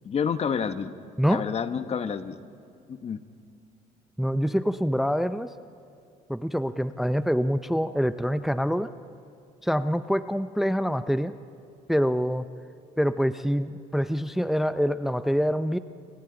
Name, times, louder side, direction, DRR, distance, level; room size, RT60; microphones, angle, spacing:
voice 1, 0.0-0.9 1.3-2.4 2.9-3.2, left 6 dB, 40° left, 10 dB, 1.0 m, -29 dB
voice 2, 4.2-5.5 6.3-8.9 9.6-11.3 11.9-12.5 13.0-15.8, equal, ahead, 12 dB, 0.5 m, -25 dB
29.5 x 24.5 x 3.9 m, 2.5 s
cardioid pair, 110°, 17 cm